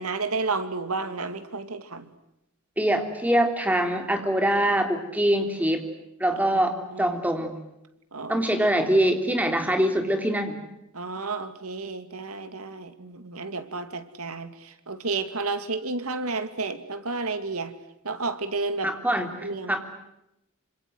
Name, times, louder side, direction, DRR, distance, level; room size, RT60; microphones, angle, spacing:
voice 1, 0.0-2.1 6.9-7.2 8.1-8.4 10.9-17.7 18.0-18.9 19.4-19.8, right 3 dB, 85° right, 10 dB, 2.5 m, -31 dB
voice 2, 2.8-5.9 6.2-7.5 8.3-10.6 18.8-19.8, right 1 dB, 5° right, 6 dB, 3.4 m, -24 dB
27.5 x 26.0 x 7.9 m, 0.84 s
head